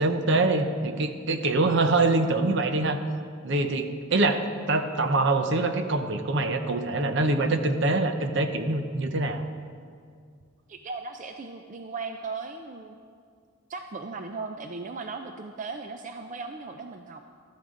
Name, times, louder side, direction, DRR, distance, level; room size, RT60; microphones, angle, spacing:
voice 1, 0.0-3.0 3.4-9.4, right 2 dB, 60° right, 7 dB, 0.8 m, -24 dB
voice 2, 10.7-13.0 13.7-17.2, right 4 dB, 40° right, 6 dB, 0.5 m, -37 dB
14.0 x 12.5 x 3.8 m, 2.1 s
head